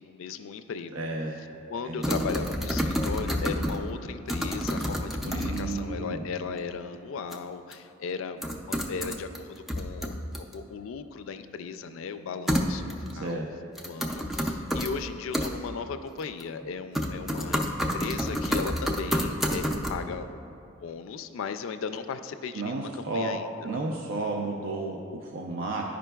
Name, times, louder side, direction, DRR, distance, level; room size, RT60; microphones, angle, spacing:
voice 1, 0.0-1.0 1.7-13.4 13.9-20.3 20.8-23.5, left 5 dB, 85° left, 10 dB, 0.3 m, -37 dB
voice 2, 0.9-1.4 1.8-2.3 5.2-6.3 13.1-13.5 22.5-23.4 23.6-25.8, right 2 dB, 75° right, 0 dB, 0.5 m, -32 dB
sound 1, 2.0-3.9 4.3-5.8 7.3-7.4 7.7-7.8 8.4-9.4 9.7-10.5 12.5-13.1 13.8-14.9 15.3-15.5 16.2-16.7 17.0-19.9, equal, ahead, 0.3 m, -29 dB
11.0 x 5.0 x 2.3 m, 2.6 s
head